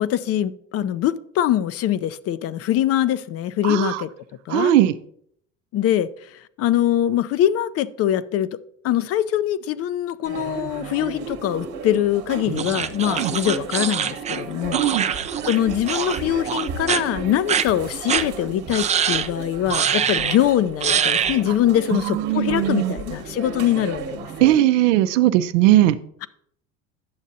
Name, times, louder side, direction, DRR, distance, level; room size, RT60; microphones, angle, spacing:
voice 1, 0.0-4.1 4.5-4.7 5.7-6.1 6.6-8.5 8.8-15.2 15.4-24.5, left 11 dB, 40° left, 0.5 m, -23 dB
voice 2, 3.6-4.0 4.5-4.9 13.2-13.3 14.7-15.0 21.9-23.0 24.4-26.0, right 13 dB, 75° right, 0.6 m, -18 dB
sound 1, 10.2-24.6, right 5 dB, 50° right, 1.2 m, -34 dB
sound 2, 12.6-15.6 15.9-16.2 16.5-17.0 17.5-17.6 18.1-18.2 18.7-19.3 19.7-20.4 20.8-21.4, right 8 dB, 20° right, 0.3 m, -23 dB
10.5 x 7.2 x 2.7 m
hypercardioid pair, 80°, 38 cm